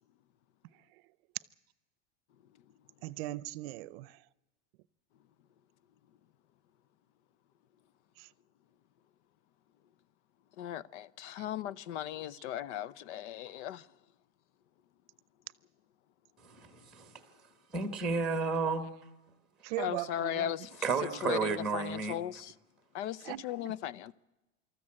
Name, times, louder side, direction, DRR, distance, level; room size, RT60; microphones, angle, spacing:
voice 1, 3.0-4.2 8.2-8.3 11.4-11.5 19.6-20.5 23.2-23.8, right 17 dB, 55° right, 0.6 m, -39 dB
voice 2, 10.6-13.8 19.8-20.7 21.2-22.5 22.9-24.1, left 11 dB, 80° left, 0.8 m, -37 dB
voice 3, 16.4-17.2 17.7-18.9 20.8-22.2, right 4 dB, ahead, 1.1 m, -32 dB
26.0 x 14.0 x 8.7 m
supercardioid pair, 175°, 35 cm